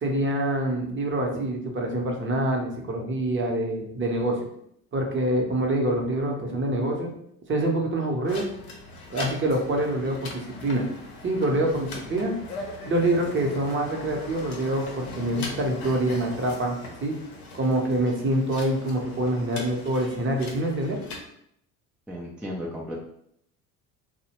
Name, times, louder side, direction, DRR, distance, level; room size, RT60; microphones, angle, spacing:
voice 1, 0.0-4.5 4.9-7.1 7.5-8.5 9.1-10.9 11.2-12.3 12.8-17.2 17.5-21.0, right 1 dB, 30° right, 1 dB, 0.7 m, -26 dB
sound 1, 8.2-21.2, left 3 dB, 90° left, 0.6 m, -40 dB
voice 2, 22.1-23.0, equal, 5° right, -4 dB, 0.3 m, -34 dB
2.6 x 2.1 x 2.9 m, 0.70 s
hypercardioid pair, 65°, 43 cm